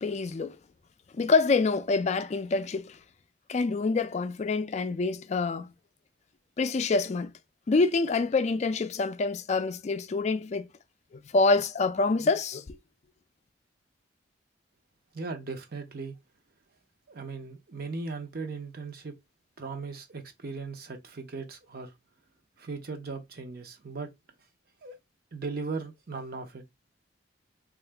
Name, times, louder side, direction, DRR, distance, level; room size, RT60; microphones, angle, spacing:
voice 1, 0.0-0.6 1.2-3.0 3.5-5.7 6.6-7.3 7.7-10.7 11.3-12.8, left 3 dB, 40° left, 0.4 m, -26 dB
voice 2, 15.1-16.1 17.1-19.1 19.6-21.9 22.6-24.1 24.8-24.9 25.3-26.6, right 4 dB, 55° right, 0.7 m, -38 dB
3.7 x 2.4 x 3.3 m
head